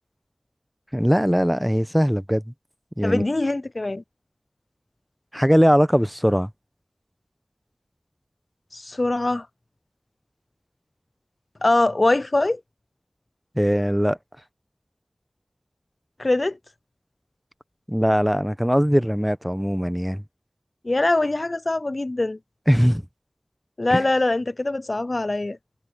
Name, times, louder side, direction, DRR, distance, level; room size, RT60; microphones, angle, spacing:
voice 1, 0.9-2.4 3.0-3.2 5.3-6.5 13.6-14.2 17.9-20.2 22.7-23.0 23.9-24.0, equal, 5° right, 0.9 m, -20 dB
voice 2, 3.0-4.0 8.7-9.5 11.6-12.6 16.2-16.6 20.8-22.4 23.8-25.6, left 2 dB, 55° left, 0.3 m, -22 dB
wide cardioid pair, 40°, 0 cm